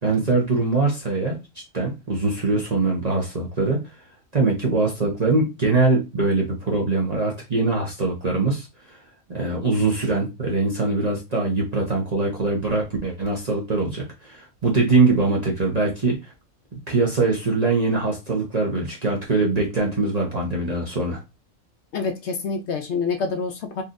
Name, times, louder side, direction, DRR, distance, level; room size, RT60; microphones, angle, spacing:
voice 1, 0.0-1.4 1.7-3.8 4.3-8.7 9.3-16.3 16.9-21.2, right 3 dB, 35° right, 0.9 m, -22 dB
voice 2, 21.9-23.8, left 5 dB, 60° left, 0.8 m, -27 dB
4.0 x 2.9 x 2.5 m
omnidirectional pair, 1.5 m